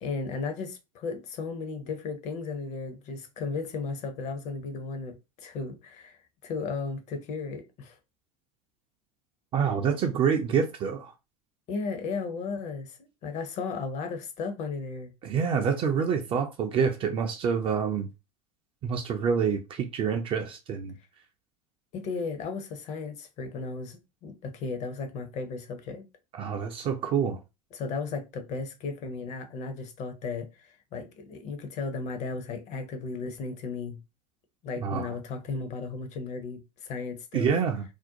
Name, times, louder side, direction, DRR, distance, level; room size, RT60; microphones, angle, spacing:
voice 1, 0.0-6.2 6.4-7.9 11.7-15.1 21.9-26.0 27.7-34.0 34.6-37.5, left 4 dB, 35° left, 0.5 m, -35 dB
voice 2, 9.5-11.1 15.2-18.1 18.8-20.9 26.4-27.4 34.8-35.1 37.3-37.8, right 6 dB, 25° right, 0.3 m, -27 dB
2.5 x 2.0 x 2.7 m
figure-of-eight pair, 80°, 21 cm